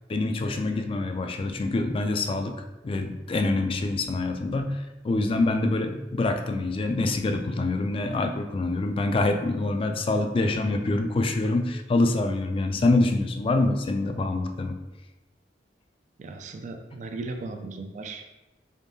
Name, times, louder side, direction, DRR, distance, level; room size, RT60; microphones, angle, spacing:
voice 1, 0.1-2.6 2.8-14.8, left 2 dB, 30° left, 6 dB, 0.3 m, -25 dB
voice 2, 16.2-18.3, right 3 dB, 45° right, 5 dB, 0.3 m, -37 dB
3.6 x 3.5 x 2.7 m, 1.1 s
head